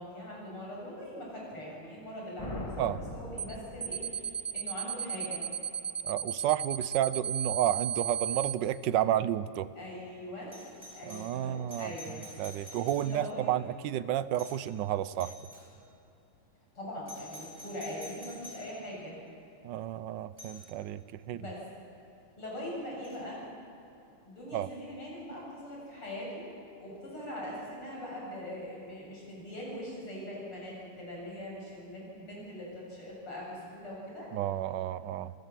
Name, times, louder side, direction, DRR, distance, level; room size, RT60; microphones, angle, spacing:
voice 1, 0.0-2.8 3.1-5.4 9.8-12.3 12.6-13.6 16.8-19.1 21.3-21.7 22.4-23.4 24.3-26.5 26.8-34.3, left 1 dB, 75° left, -3 dB, 8.7 m, -42 dB
sound 1, 2.4-4.5, left 1 dB, 15° left, 1.5 m, -41 dB
sound 2, 3.4-3.5 3.8-8.5, right 9 dB, 25° right, 0.6 m, -34 dB
voice 2, 6.0-9.7 11.1-15.3 19.6-21.4 24.5-24.7 34.3-35.3, right 11 dB, 70° right, 15 dB, 1.2 m, -31 dB
Doorbell, 10.5-13.5 14.4-14.8 15.2-15.7 17.1-18.7 20.4-20.7 23.0-23.2, left 1 dB, 5° right, 6.1 m, -49 dB
28.5 x 17.5 x 7.6 m, 2.9 s
omnidirectional pair, 2.4 m